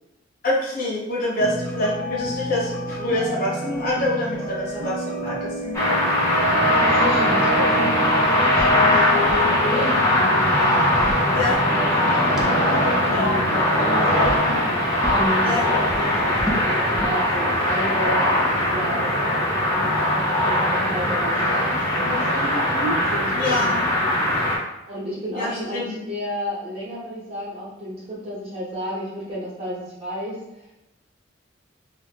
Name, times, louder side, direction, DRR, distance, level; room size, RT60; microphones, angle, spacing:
voice 1, 0.4-5.8 11.3-11.6 13.0-13.4 15.4-15.6 22.7-22.9 23.4-23.9 25.3-25.9, left 1 dB, 50° left, -5 dB, 0.8 m, -26 dB
sound 1, 1.4-15.1, equal, 50° right, 0.5 m, -31 dB
sound 2, 5.7-24.6, left 1 dB, 15° left, 0.7 m, -20 dB
voice 2, 6.6-22.5 23.1-24.4 24.9-30.4, equal, 30° right, -8 dB, 1.1 m, -32 dB
sound 3, 8.5-8.8 9.1-9.6 10.7-11.9 12.4-12.5 13.5-13.9 14.2-14.5 15.0-15.3 15.7-17.2, equal, 5° right, 0.3 m, -31 dB
2.5 x 2.0 x 3.3 m, 0.89 s
head